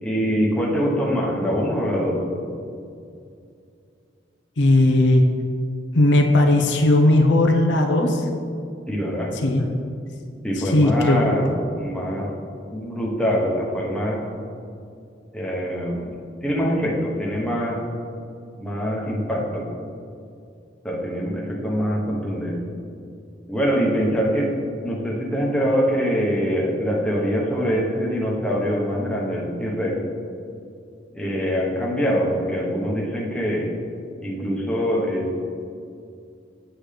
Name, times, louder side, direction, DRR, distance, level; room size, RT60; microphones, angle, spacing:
voice 1, 0.0-2.2 8.9-9.7 10.4-11.5 11.8-12.3 12.7-14.2 15.3-17.8 18.6-19.7 20.8-22.6 23.5-24.6 24.8-30.0 31.1-33.7 34.2-35.5, equal, 5° left, -4 dB, 1.1 m, -24 dB
voice 2, 4.6-5.2 5.9-8.3 9.4-9.6 10.7-11.2, left 2 dB, 75° left, 3 dB, 0.7 m, -17 dB
8.0 x 7.7 x 3.4 m, 2.4 s
head